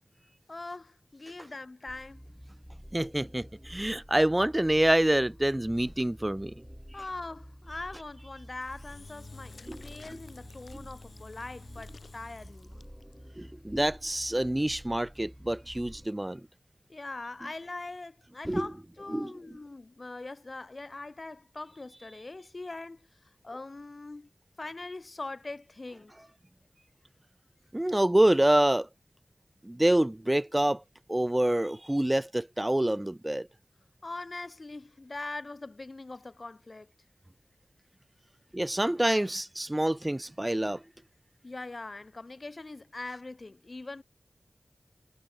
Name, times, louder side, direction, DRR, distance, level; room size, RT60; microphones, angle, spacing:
voice 1, 0.5-2.2 6.9-12.9 16.9-23.1 23.4-24.3 24.6-26.1 34.0-36.9 41.4-44.0, left 2 dB, 45° left, 2.0 m, -42 dB
sound 1, 1.9-16.1, equal, ahead, 7.5 m, -49 dB
voice 2, 2.9-6.5 9.7-9.8 13.4-16.4 18.5-18.7 19.1-19.3 27.7-28.9 29.7-30.8 31.1-33.5 38.5-40.8, right 1 dB, 15° right, 0.5 m, -26 dB
Engine / Drill, 8.6-13.1, left 4 dB, 75° left, 2.3 m, -51 dB
wide cardioid pair, 80°, 0 cm